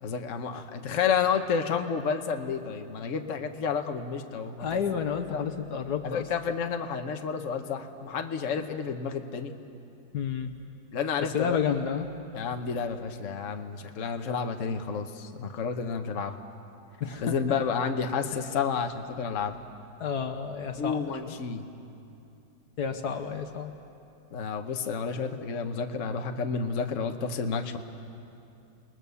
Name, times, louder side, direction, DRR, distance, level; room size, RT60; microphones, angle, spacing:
voice 1, 0.0-4.8 5.3-5.4 6.0-9.5 10.9-11.6 12.3-16.4 17.2-19.5 20.8-21.7 24.3-27.8, left 6 dB, 50° left, 5 dB, 1.3 m, -30 dB
voice 2, 4.6-6.3 10.1-10.5 11.2-12.1 17.0-17.4 20.0-21.4 22.8-23.7, left 7 dB, 65° left, 7 dB, 1.5 m, -30 dB
29.5 x 20.5 x 7.0 m, 2.7 s
omnidirectional pair, 1.9 m